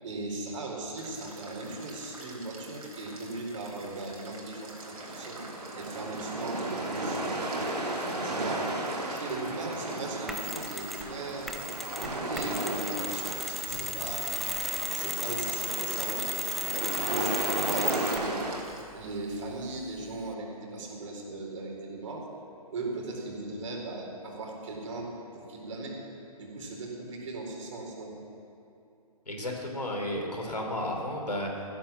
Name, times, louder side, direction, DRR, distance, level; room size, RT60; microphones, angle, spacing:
voice 1, 0.0-5.5 5.7-7.5 8.0-8.7 9.1-11.5 12.0-14.3 14.9-18.4 18.9-22.3 22.7-26.0 26.4-28.2, right 2 dB, 55° right, 0 dB, 4.0 m, -38 dB
sound 1, 1.0-18.8, right 2 dB, 70° right, 4.2 m, -48 dB
sound 2, 4.8-18.6, right 1 dB, 85° right, 1.9 m, -35 dB
Mechanisms, 10.3-11.1 11.5-18.3, equal, ahead, 0.6 m, -34 dB
voice 2, 29.3-31.6, left 1 dB, 90° left, 1 dB, 3.4 m, -33 dB
15.0 x 12.0 x 7.3 m, 2.7 s
figure-of-eight pair, 135°, 20 cm